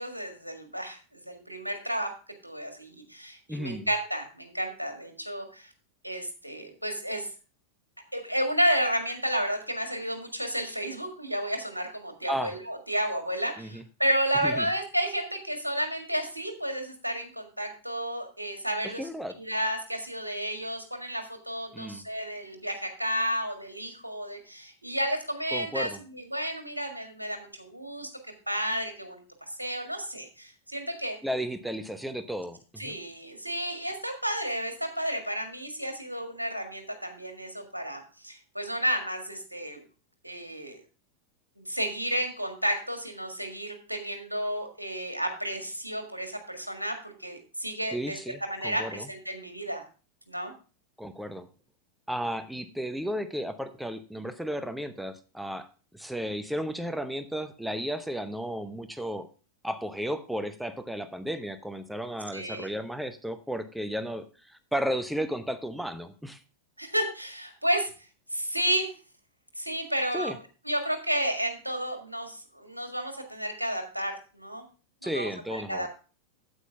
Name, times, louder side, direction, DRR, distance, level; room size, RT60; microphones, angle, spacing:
voice 1, 0.0-2.1 2.4-5.7 6.0-7.3 8.1-19.0 19.3-28.1 28.5-31.2 32.8-39.8 40.2-40.8 41.6-49.8 50.3-50.5 62.3-62.7 66.8-67.9 68.3-68.9 69.6-70.4 70.7-74.6 75.0-75.9, equal, 85° right, 5 dB, 1.7 m, -32 dB
voice 2, 3.5-3.9 12.3-12.6 13.6-13.8 14.4-14.7 18.8-19.3 21.7-22.0 25.5-26.0 31.2-33.0 47.9-49.1 51.0-51.5 52.1-55.7 55.9-59.3 59.6-66.4 70.1-70.4 75.0-75.9, equal, ahead, 10 dB, 0.8 m, -34 dB
9.4 x 8.4 x 3.4 m, 0.35 s
figure-of-eight pair, 90°, 0 cm